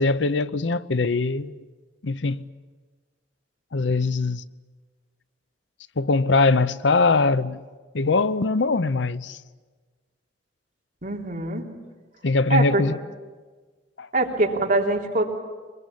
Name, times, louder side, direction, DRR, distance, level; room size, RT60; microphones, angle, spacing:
voice 1, 0.0-1.7 2.0-2.4 3.7-4.4 6.0-7.6 7.9-9.4 12.2-13.0 14.0-14.1, left 3 dB, 85° left, 0.7 m, -22 dB
voice 2, 11.0-11.6 12.5-12.8 14.1-15.2, right 2 dB, 50° right, 3.4 m, -23 dB
24.0 x 22.0 x 8.5 m
head